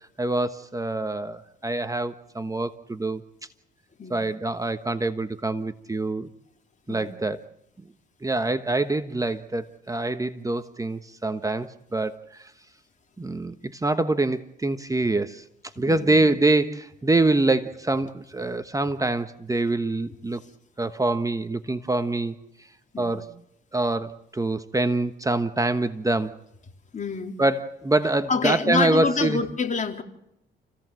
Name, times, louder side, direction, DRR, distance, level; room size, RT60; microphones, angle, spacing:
voice 1, 0.2-3.2 4.1-6.3 6.9-7.4 8.2-12.5 13.2-15.4 15.8-20.4 20.8-22.3 23.0-23.3 23.7-26.3 27.4-29.4, right 2 dB, 15° right, 10 dB, 1.3 m, -25 dB
voice 2, 4.0-4.3 6.9-7.1 15.9-16.2 22.9-23.3 26.9-27.3 28.3-30.0, left 5 dB, 40° left, 5 dB, 3.4 m, -27 dB
29.5 x 16.5 x 7.7 m, 0.81 s
cardioid pair, 90°, 20 cm